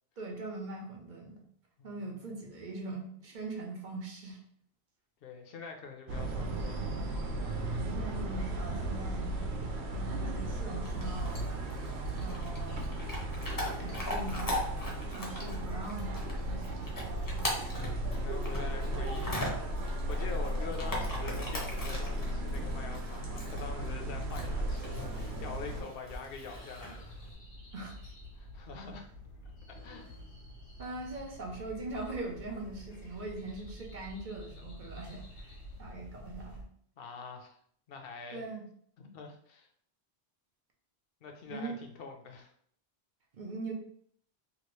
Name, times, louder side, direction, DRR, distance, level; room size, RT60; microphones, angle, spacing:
voice 1, 0.2-1.4 1.8-4.4 7.7-9.6 9.9-11.4 12.2-12.8 13.2-13.4 13.8-14.5 15.1-17.1 27.7-28.1 30.8-36.7 38.3-38.6 41.5-41.8 43.3-43.7, right 2 dB, 50° right, 0 dB, 0.7 m, -41 dB
voice 2, 1.8-2.3 5.2-6.9 13.6-14.1 17.7-27.2 28.3-29.1 29.7-30.1 31.2-31.3 37.0-37.6 37.9-38.5 39.0-39.7 41.2-42.5, left 5 dB, 65° left, 4 dB, 0.8 m, -45 dB
sound 1, 6.1-25.8, right 1 dB, 85° right, 0.9 m, -35 dB
Chewing mastication / Dog, 10.8-27.3, left 1 dB, 25° left, 0.6 m, -41 dB
sound 2, 26.2-36.7, equal, 80° left, 1.3 m, -49 dB
2.9 x 2.5 x 3.0 m, 0.63 s
omnidirectional pair, 1.1 m